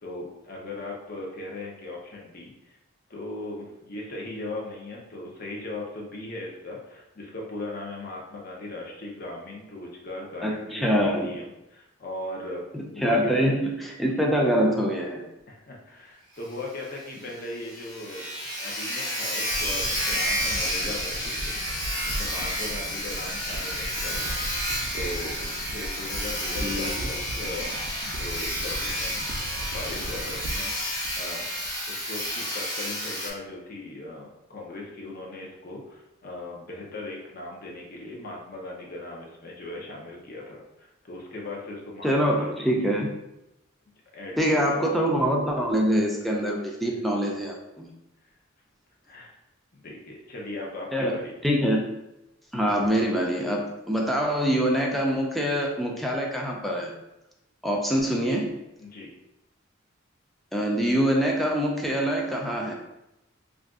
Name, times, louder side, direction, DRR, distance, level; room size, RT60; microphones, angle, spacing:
voice 1, 0.0-2.8 3.1-12.6 12.9-13.5 15.5-18.3 18.6-24.4 24.9-25.3 25.7-42.7 44.1-44.8 46.8-47.0 49.0-49.3 49.7-51.3 58.8-59.1, left 2 dB, 45° left, -1 dB, 0.6 m, -38 dB
voice 2, 10.4-11.3 12.7-15.2 26.6-27.1 42.0-43.1 44.4-47.9 50.9-51.2 51.4-51.9 52.5-56.9 57.6-58.5 60.5-62.7, equal, ahead, -1 dB, 0.4 m, -25 dB
Sawing, 16.4-16.5 16.8-16.9 17.3-17.4 17.6-33.3, equal, 20° left, 0.8 m, -30 dB
sound 1, 19.5-32.0 32.3-32.4, right 1 dB, 80° right, 0.4 m, -38 dB
2.4 x 2.3 x 3.5 m, 0.91 s
head